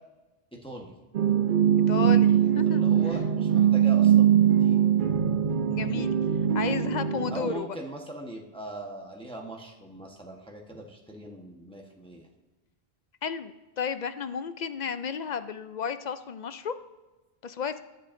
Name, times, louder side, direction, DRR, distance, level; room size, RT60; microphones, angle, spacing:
voice 1, 0.5-0.9 2.7-4.8 7.3-12.3, right 1 dB, 5° left, 0 dB, 1.0 m, -41 dB
sound 1, 1.1-7.5, right 9 dB, 55° right, 0.7 m, -22 dB
voice 2, 1.9-2.8 5.7-6.2 6.5-7.7 13.2-16.7 17.4-17.8, left 6 dB, 55° left, 11 dB, 0.5 m, -33 dB
21.0 x 7.6 x 2.6 m, 1.1 s
omnidirectional pair, 1.1 m